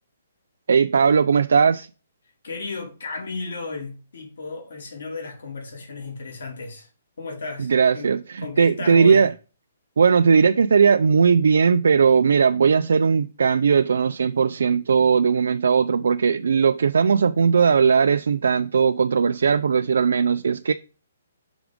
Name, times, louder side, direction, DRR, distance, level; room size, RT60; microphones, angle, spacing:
voice 1, 0.7-1.9 7.6-9.3 10.0-20.7, right 6 dB, 80° right, 0.3 m, -18 dB
voice 2, 2.4-6.9 7.2-8.1 8.4-9.3, left 3 dB, 70° left, 2.5 m, -34 dB
6.0 x 3.6 x 5.1 m
hypercardioid pair, 165°, 0 cm